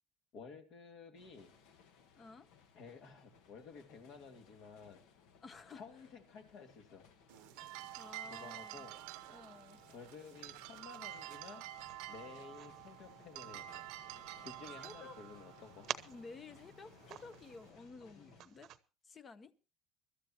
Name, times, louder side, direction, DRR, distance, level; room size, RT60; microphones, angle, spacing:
voice 1, 0.3-1.5 2.7-5.0 5.7-7.0 8.3-8.9 9.9-11.6 12.1-13.8 14.4-15.9 18.2-18.3, left 5 dB, 55° left, 2.7 m, -53 dB
sound 1, 1.2-18.4, left 6 dB, 80° left, 1.7 m, -63 dB
voice 2, 2.2-2.5 5.4-5.8 8.0-8.9 9.3-9.8 14.8-15.2 16.1-18.7 19.0-19.5, left 4 dB, 25° left, 0.9 m, -53 dB
sound 2, 7.3-17.7, right 14 dB, 90° right, 0.8 m, -50 dB
sound 3, 11.0-18.8, right 11 dB, 50° right, 0.9 m, -51 dB
24.0 x 13.0 x 3.0 m
cardioid pair, 150°, 0 cm